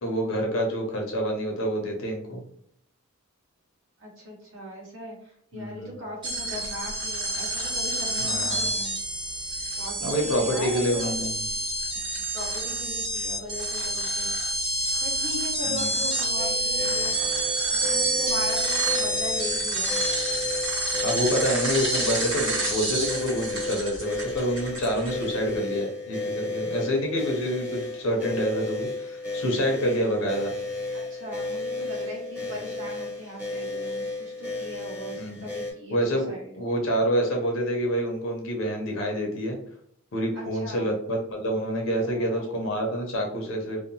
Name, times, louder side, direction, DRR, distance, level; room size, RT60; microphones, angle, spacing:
voice 1, 0.0-2.4 5.5-6.0 8.2-8.7 10.0-11.4 15.6-15.9 21.0-30.5 35.1-35.5 35.9-39.6 40.1-43.8, equal, 65° left, 2 dB, 0.6 m, -27 dB
voice 2, 4.0-8.9 9.8-11.2 12.3-14.3 15.0-17.2 17.7-20.0 29.8-30.2 30.9-36.0 36.3-36.5 40.3-40.9 42.0-42.5, equal, 65° right, -3 dB, 1.1 m, -39 dB
sound 1, 6.2-25.4, right 1 dB, 25° right, 1.2 m, -28 dB
sound 2, 16.4-35.7, left 2 dB, 10° right, 0.8 m, -34 dB
2.7 x 2.1 x 2.7 m, 0.68 s
head